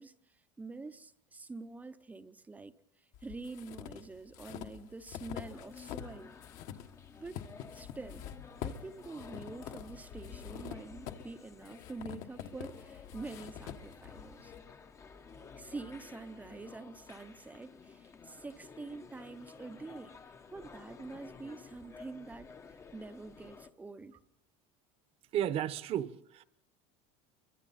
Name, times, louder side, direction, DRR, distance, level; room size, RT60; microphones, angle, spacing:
voice 1, 0.0-2.8 3.2-6.3 7.2-7.4 7.7-8.3 8.6-14.5 15.5-20.1 20.5-22.5 22.9-24.2, right 3 dB, 10° right, 0.8 m, -46 dB
sound 1, 3.1-6.2 6.4-14.6, left 9 dB, 55° left, 1.5 m, -45 dB
sound 2, 5.4-23.7, left 5 dB, 20° left, 0.9 m, -53 dB
voice 2, 25.3-26.4, right 10 dB, 35° right, 1.1 m, -33 dB
29.5 x 24.0 x 4.2 m
cardioid pair, 160°, 16 cm